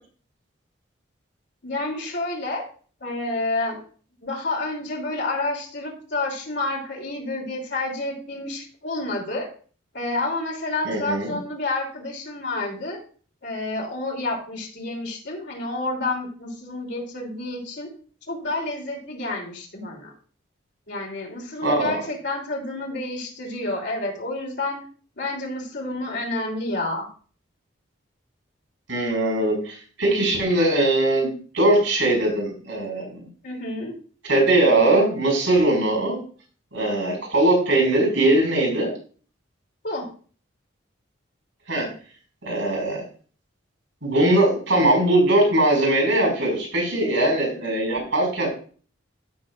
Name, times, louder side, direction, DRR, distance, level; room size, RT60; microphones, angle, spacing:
voice 1, 1.6-2.6 3.0-3.8 4.2-9.5 9.9-13.0 13.4-17.9 18.3-20.1 20.9-24.8 25.2-27.1 33.4-33.9 39.8-40.1, left 2 dB, 60° left, -1 dB, 3.2 m, -29 dB
voice 2, 10.9-11.3 21.6-22.0 28.9-33.3 34.3-36.2 36.7-38.9 41.7-41.9 42.5-43.0 44.0-48.5, right 1 dB, 75° right, 0 dB, 5.3 m, -20 dB
15.0 x 6.3 x 2.5 m, 0.42 s
head